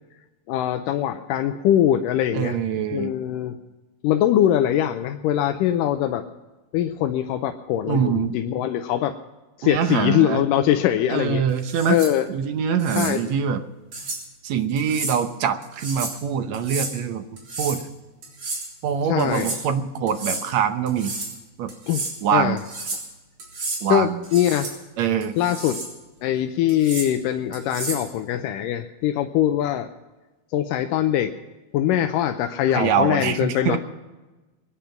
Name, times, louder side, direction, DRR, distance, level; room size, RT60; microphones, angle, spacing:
voice 1, 0.5-2.6 2.9-3.6 4.0-6.2 6.7-9.1 9.6-11.4 11.9-12.3 13.0-13.2 19.1-19.5 21.9-22.0 22.3-22.6 23.9-24.7 25.4-25.8 26.2-29.9 30.5-31.3 31.7-33.8, left 11 dB, 85° left, 7 dB, 2.3 m, -22 dB
voice 2, 2.3-3.1 7.9-8.4 9.6-10.4 11.1-12.0 12.3-13.6 14.4-17.2 17.6-17.8 18.8-21.1 21.6-21.7 22.2-22.6 23.8-24.2 25.0-25.3 32.7-33.8, right 8 dB, 65° right, 8 dB, 1.9 m, -24 dB
sound 1, 11.6-12.1 12.8-13.1 13.9-14.2 14.8-15.2 15.6-16.2 16.5-16.9 17.4-17.8 18.2-18.7 19.2-19.6 20.1-20.4 20.9-21.4 21.7-22.1 22.6-23.1 23.4-23.8 24.2-24.7 25.2-25.9 26.7-27.1 27.5-28.1, right 3 dB, 45° right, 4.6 m, -32 dB
23.5 x 10.0 x 5.9 m, 1.2 s
omnidirectional pair, 3.9 m